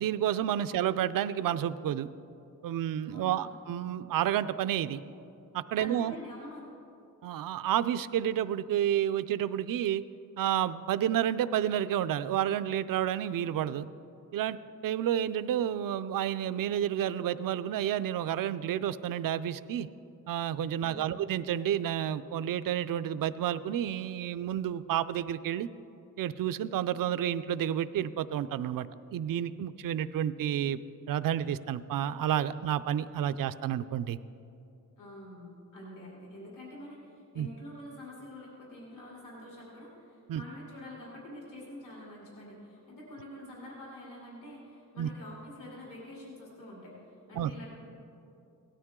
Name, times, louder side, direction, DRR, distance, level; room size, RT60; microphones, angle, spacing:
voice 1, 0.0-2.1 2.6-5.0 5.5-6.1 7.2-10.0 10.4-13.9 14.3-14.6 14.8-19.9 20.3-25.7 26.2-28.9 29.1-30.8 31.1-34.2 37.4-37.5 40.3-40.4 45.0-45.1 47.3-47.5, right 10 dB, 90° right, 14 dB, 0.5 m, -30 dB
voice 2, 3.0-3.5 5.8-6.7 20.8-21.2 35.0-46.9 47.3-47.7, left 1 dB, 70° left, -4 dB, 3.0 m, -47 dB
17.5 x 12.5 x 3.7 m, 2.7 s
wide cardioid pair, 130°, 33 cm